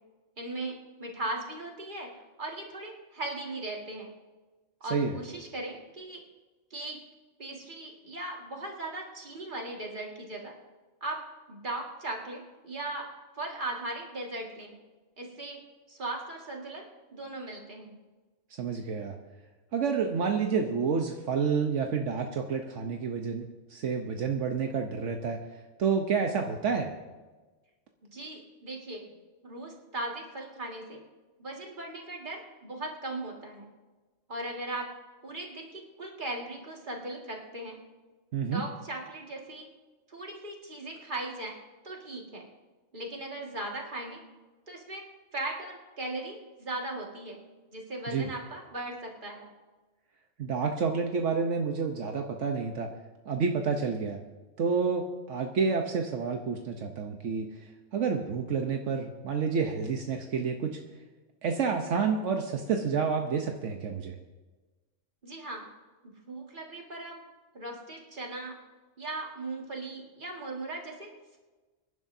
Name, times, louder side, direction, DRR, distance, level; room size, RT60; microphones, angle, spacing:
voice 1, 0.4-2.1 2.4-4.1 4.8-6.2 6.7-7.0 7.4-10.5 11.0-11.2 11.5-13.1 13.4-14.8 15.2-15.6 15.9-16.8 17.1-18.0 28.1-29.1 29.4-31.0 31.4-33.7 34.3-34.9 35.2-37.8 38.5-39.7 40.1-41.6 41.8-42.5 42.9-44.2 44.7-45.0 45.3-47.4 47.7-49.5 65.2-65.7 66.0-67.2 67.5-68.5 69.0-71.4, right 2 dB, 40° right, -1 dB, 2.2 m, -38 dB
voice 2, 18.6-19.2 19.7-25.4 25.8-26.9 38.3-38.6 48.1-48.2 50.4-52.9 53.3-54.2 54.6-57.5 57.9-60.8 61.4-64.2, right 5 dB, 75° right, 3 dB, 1.2 m, -29 dB
24.5 x 11.0 x 2.7 m, 1.3 s
omnidirectional pair, 1.3 m